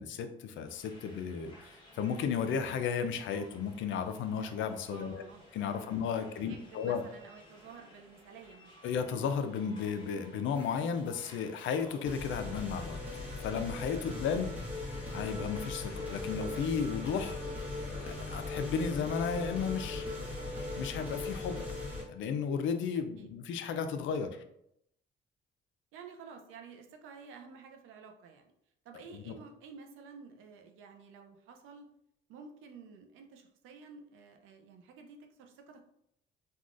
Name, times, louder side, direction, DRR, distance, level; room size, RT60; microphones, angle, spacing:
voice 1, 0.0-5.3 5.5-7.0 8.8-13.0 13.4-14.5 15.1-17.4 18.0-20.0 20.8-24.4 29.1-29.3, left 6 dB, 75° left, 8 dB, 0.4 m, -34 dB
sound 1, 0.6-16.3, left 1 dB, 20° left, 1.1 m, -57 dB
voice 2, 4.9-5.4 5.8-5.9 6.4-8.7 14.1-14.4 22.9-23.3 25.9-28.5 28.8-31.9 32.3-35.8, right 5 dB, 90° right, 4 dB, 0.5 m, -52 dB
sound 2, 9.5-22.0, left 2 dB, 5° right, 1.0 m, -40 dB
3.5 x 2.3 x 2.4 m, 0.76 s
cardioid pair, 90°, 20 cm